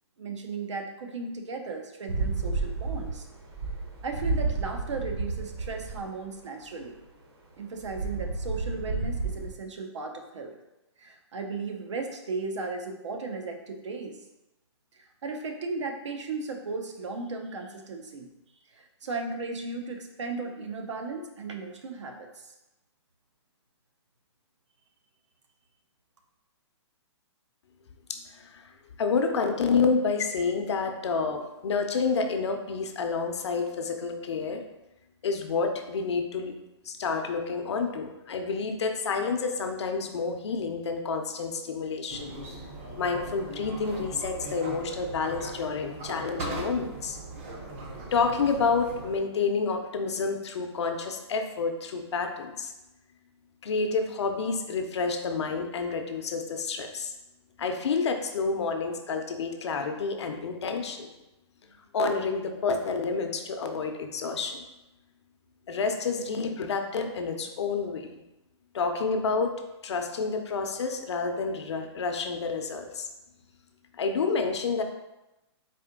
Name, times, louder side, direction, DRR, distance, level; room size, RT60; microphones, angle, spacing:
voice 1, 0.2-3.3 4.0-7.0 7.6-10.5 11.0-14.2 14.9-18.3 18.7-22.5, right 3 dB, 85° right, 4 dB, 0.7 m, -36 dB
sound 1, 2.1-6.0 7.8-9.5, right 3 dB, 60° right, 1.0 m, -31 dB
voice 2, 28.1-28.7 29.0-34.6 35.2-36.5 36.8-42.3 43.0-47.2 48.1-52.7 53.6-57.1 57.6-61.1 61.7-64.6 65.7-68.1 68.7-69.5 69.8-73.0 74.0-74.8, left 4 dB, 70° left, 5 dB, 0.6 m, -29 dB
sound 2, 42.1-49.2, right 2 dB, 25° right, 0.5 m, -39 dB
4.2 x 2.8 x 3.6 m, 0.96 s
hypercardioid pair, 165°, 15 cm